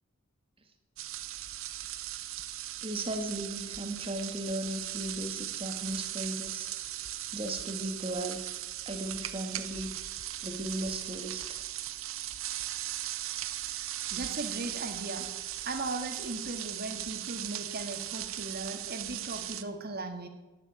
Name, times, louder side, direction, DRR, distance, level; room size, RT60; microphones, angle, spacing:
sound 1, 1.0-19.6, right 13 dB, 70° right, 0.9 m, -38 dB
voice 1, 2.8-6.7 7.3-8.4 8.9-9.9 10.4-11.6, right 1 dB, 25° right, 5 dB, 1.9 m, -36 dB
voice 2, 13.7-15.3 15.7-20.3, right 2 dB, 45° right, 6 dB, 1.9 m, -38 dB
12.0 x 10.5 x 9.0 m, 1.1 s
head